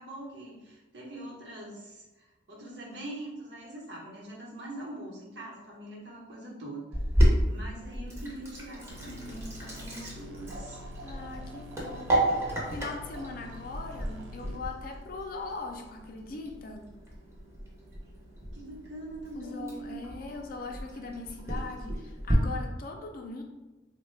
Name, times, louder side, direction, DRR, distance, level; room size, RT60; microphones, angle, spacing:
voice 1, 0.0-7.0 7.4-10.8 18.5-20.3, right 1 dB, 65° right, -3 dB, 0.9 m, -43 dB
Sink (filling or washing), 6.9-22.3, right 1 dB, 15° right, 0.6 m, -32 dB
voice 2, 7.9-8.4 11.0-16.9 19.3-23.4, left 3 dB, 50° left, 3 dB, 0.4 m, -40 dB
sound 1, 8.9-14.6, left 1 dB, 80° right, 0.4 m, -47 dB
3.5 x 2.1 x 3.1 m, 1.1 s
head